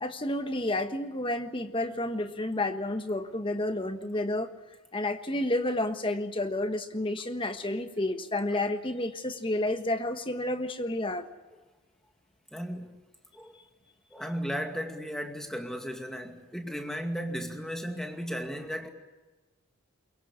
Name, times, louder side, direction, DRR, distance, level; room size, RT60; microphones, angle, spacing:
voice 1, 0.0-4.5 4.9-11.3, left 1 dB, 25° left, 1.4 m, -30 dB
voice 2, 12.5-12.9 13.3-13.5 14.1-18.9, equal, ahead, 2.2 m, -35 dB
23.0 x 23.0 x 8.5 m
head